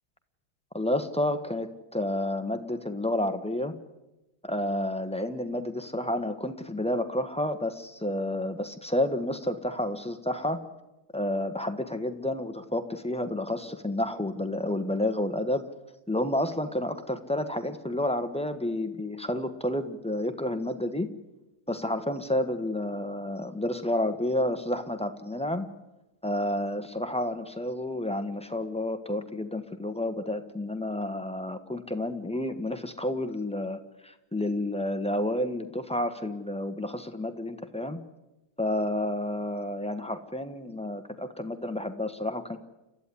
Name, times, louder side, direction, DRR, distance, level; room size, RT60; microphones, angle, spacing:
voice 1, 0.7-3.7 4.4-10.6 11.1-15.6 16.1-21.1 21.7-25.7 26.2-38.0 38.6-42.6, left 1 dB, 5° left, 7 dB, 0.8 m, -30 dB
30.0 x 13.5 x 9.8 m, 1.0 s
omnidirectional pair, 2.3 m